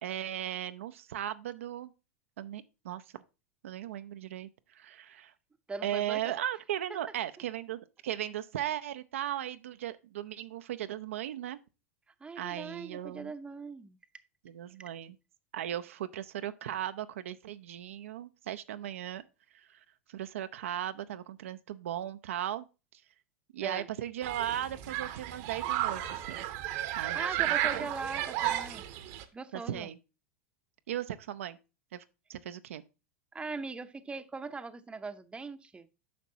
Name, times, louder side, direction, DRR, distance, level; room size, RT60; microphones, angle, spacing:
voice 1, 0.0-1.9 2.4-3.2 3.6-5.3 5.8-11.6 12.4-13.3 14.4-15.2 15.5-19.2 19.5-19.8 20.1-22.7 23.5-26.5 27.0-27.9 29.5-30.0 30.9-31.6 31.9-32.0 32.3-32.8, right 11 dB, 75° right, 0.5 m, -37 dB
voice 2, 5.7-6.4 6.9-7.0 12.2-14.0 23.6-23.9 26.9-28.9 29.3-29.9 33.3-35.9, right 4 dB, 15° right, 0.7 m, -40 dB
Human group actions, 24.2-29.2, right 13 dB, 55° right, 0.8 m, -33 dB
9.4 x 6.0 x 2.7 m
hypercardioid pair, 90°, 7 cm